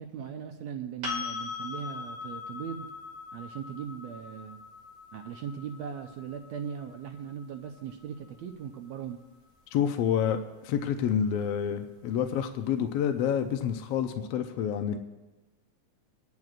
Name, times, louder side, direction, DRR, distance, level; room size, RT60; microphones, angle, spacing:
voice 1, 0.0-2.9 3.3-4.6 5.1-9.2, right 8 dB, 75° right, 3 dB, 1.9 m, -39 dB
sound 1, 1.0-8.8 11.7-11.8, left 5 dB, 30° right, 2.3 m, -41 dB
voice 2, 9.7-15.0, left 8 dB, 75° left, 6 dB, 1.6 m, -28 dB
25.0 x 10.5 x 2.5 m, 1.1 s
omnidirectional pair, 3.3 m